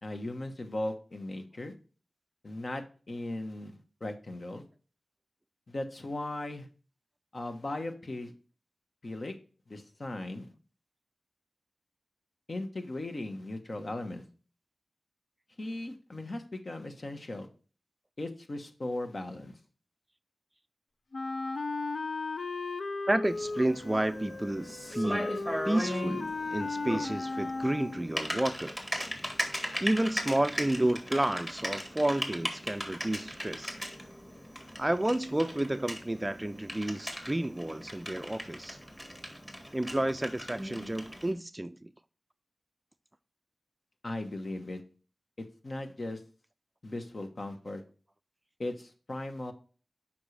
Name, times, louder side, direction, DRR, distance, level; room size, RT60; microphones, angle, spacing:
voice 1, 0.0-1.7 2.4-4.6 5.7-6.7 7.3-8.3 9.0-9.3 9.7-10.5 12.5-14.3 15.6-17.5 18.2-19.6 44.0-44.8 45.4-46.2 46.8-47.8 48.6-49.5, left 2 dB, 50° left, 1.2 m, -38 dB
Wind instrument woodwind instrument, 21.1-28.1, left 3 dB, 70° left, 0.5 m, -36 dB
voice 2, 23.1-25.4 25.6-28.8 29.8-33.8 34.8-38.8 39.7-41.9, right 1 dB, 20° right, 0.4 m, -31 dB
Typing, 23.2-41.3, equal, 10° left, 1.8 m, -38 dB
7.3 x 5.5 x 3.3 m
wide cardioid pair, 65°, 0 cm